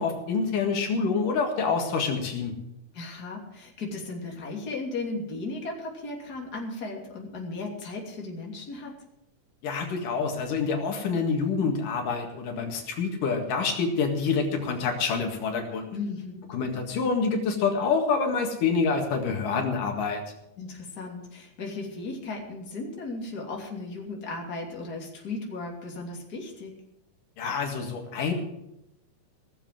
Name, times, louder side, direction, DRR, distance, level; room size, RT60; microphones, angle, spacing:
voice 1, 0.0-2.5 9.6-15.9 16.5-20.2 27.4-28.3, left 5 dB, 85° left, 3 dB, 3.5 m, -27 dB
voice 2, 2.9-8.9 15.9-16.4 20.6-26.7, left 3 dB, 30° left, -1 dB, 3.2 m, -36 dB
18.0 x 7.3 x 7.7 m, 0.85 s
omnidirectional pair, 3.6 m